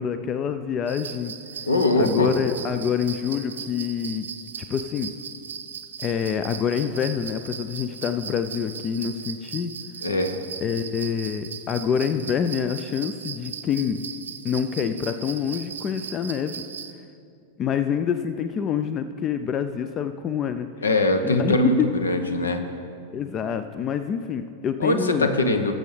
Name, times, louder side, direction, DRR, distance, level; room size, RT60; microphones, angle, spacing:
voice 1, 0.0-1.3 2.0-4.3 4.7-5.1 6.0-9.7 10.6-14.0 14.4-16.6 17.6-20.7 21.2-21.7 23.1-25.3, left 7 dB, 30° left, 10 dB, 0.4 m, -26 dB
sound 1, 0.9-16.9, right 7 dB, 65° right, 0.7 m, -38 dB
voice 2, 1.7-2.3 10.0-10.4 20.8-21.8 22.0-22.6 24.8-25.7, left 2 dB, 75° left, 8 dB, 0.9 m, -21 dB
19.5 x 7.5 x 3.3 m, 2.4 s
figure-of-eight pair, 90°, 0 cm